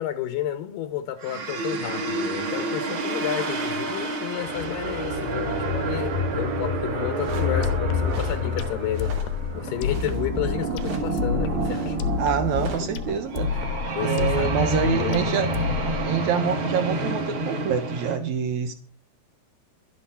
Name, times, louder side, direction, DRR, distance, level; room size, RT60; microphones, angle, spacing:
voice 1, 0.0-12.0 13.5-13.7 14.0-14.5 14.8-15.4, left 11 dB, 75° left, 2.2 m, -31 dB
sound 1, 1.2-18.2, right 1 dB, 40° right, 2.0 m, -28 dB
sound 2, 7.1-7.6 8.1-8.4 8.8-9.4 9.6-10.2 10.7-11.1 11.6-12.9, right 4 dB, 65° right, 4.7 m, -42 dB
sound 3, 7.6-16.3, left 7 dB, 90° left, 3.3 m, -30 dB
voice 2, 12.2-13.5 14.0-15.5 16.0-18.7, right 7 dB, 85° right, 1.6 m, -26 dB
12.0 x 10.5 x 5.7 m
omnidirectional pair, 4.6 m